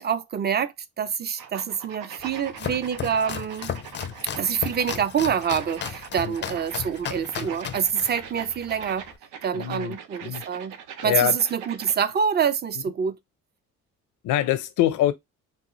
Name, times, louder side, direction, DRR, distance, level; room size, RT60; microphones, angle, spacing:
voice 1, 0.0-3.7 4.4-9.1 9.4-10.7 11.0-13.2, right 7 dB, 35° right, 0.4 m, -26 dB
sound 1, 1.4-12.1, right 8 dB, 90° right, 0.6 m, -42 dB
Domestic sounds home sounds, 2.2-9.2, left 9 dB, 40° left, 0.4 m, -35 dB
voice 2, 9.5-10.5 11.0-11.4 14.2-15.1, left 12 dB, 80° left, 0.6 m, -24 dB
3.5 x 2.4 x 2.9 m
cardioid pair, 90°, 30 cm